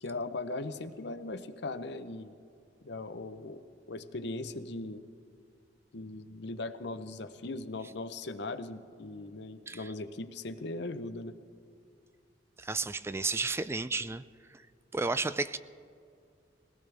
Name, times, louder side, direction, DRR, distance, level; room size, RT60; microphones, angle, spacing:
voice 1, 0.0-2.4 2.8-3.6 3.9-5.0 5.9-11.3, left 2 dB, 70° left, 11 dB, 0.8 m, -39 dB
voice 2, 12.6-14.2 14.9-15.6, right 3 dB, 15° right, 13 dB, 0.3 m, -32 dB
21.0 x 17.5 x 3.4 m, 2.4 s
head